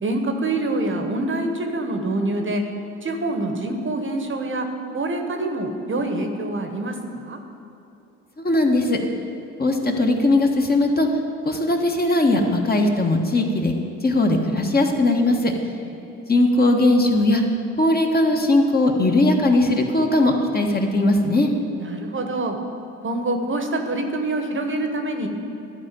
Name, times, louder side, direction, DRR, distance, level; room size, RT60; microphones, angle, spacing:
voice 1, 0.0-2.6 3.0-4.7 4.9-7.4 16.0-16.3 21.8-22.6 23.0-25.3, right 2 dB, 35° right, 5 dB, 1.1 m, -26 dB
voice 2, 8.4-9.0 9.6-11.1 11.4-13.7 14.0-15.5 16.3-17.4 17.8-21.5, left 2 dB, 25° left, 2 dB, 1.3 m, -19 dB
11.5 x 4.3 x 7.5 m, 2.8 s
hypercardioid pair, 60°, 36 cm